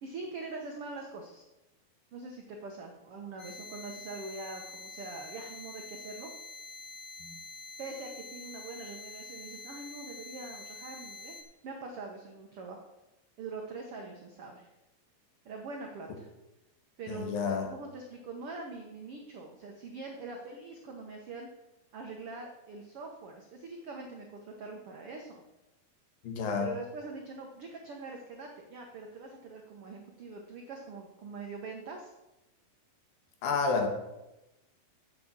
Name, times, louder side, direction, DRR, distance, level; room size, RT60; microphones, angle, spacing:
voice 1, 0.0-1.4 2.1-6.3 7.8-11.4 11.6-12.8 13.4-14.7 15.4-16.3 17.0-21.5 21.9-25.4 26.6-32.1, right 3 dB, 80° right, 2 dB, 1.3 m, -43 dB
sound 1, 3.4-11.4, left 3 dB, 40° left, 1.5 m, -46 dB
voice 2, 17.1-17.7 26.2-26.7 33.4-33.9, left 5 dB, 75° left, 3 dB, 3.2 m, -30 dB
7.6 x 7.6 x 7.3 m, 0.95 s
omnidirectional pair, 4.2 m